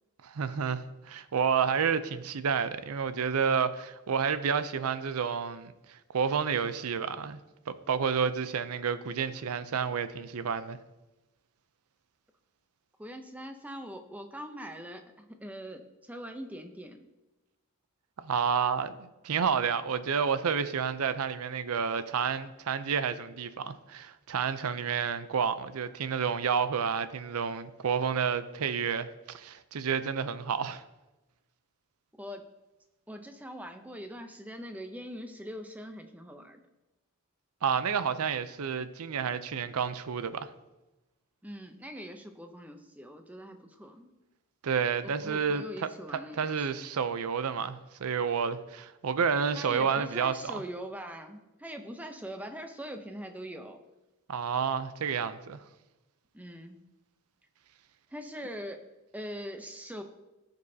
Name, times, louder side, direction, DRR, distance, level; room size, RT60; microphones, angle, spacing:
voice 1, 0.2-7.4 7.7-10.8 18.2-30.8 37.6-40.5 44.6-45.9 46.4-50.6 54.3-55.6, right 6 dB, 80° right, 0.5 m, -30 dB
voice 2, 13.0-17.0 32.2-32.5 33.1-36.6 41.4-44.1 45.0-46.7 49.5-53.8 56.3-56.8 58.1-58.8 59.1-60.0, equal, 5° right, 0.6 m, -42 dB
15.0 x 5.3 x 2.7 m
head